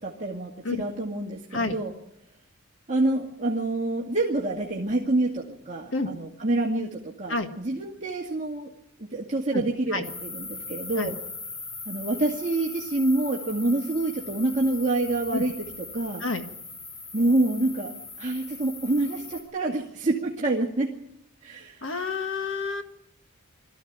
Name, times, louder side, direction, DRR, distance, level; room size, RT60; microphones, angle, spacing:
voice 1, 0.0-1.9 2.9-8.7 9.0-11.1 11.9-15.6 15.9-16.2 17.1-17.9 18.2-20.9 21.4-21.9, right 2 dB, 35° right, -3 dB, 2.3 m, -27 dB
sound 1, 10.0-19.4, left 4 dB, 80° left, 6.5 m, -40 dB
voice 2, 21.8-22.8, left 3 dB, 60° left, 6 dB, 1.8 m, -28 dB
22.5 x 14.5 x 9.5 m, 0.76 s
head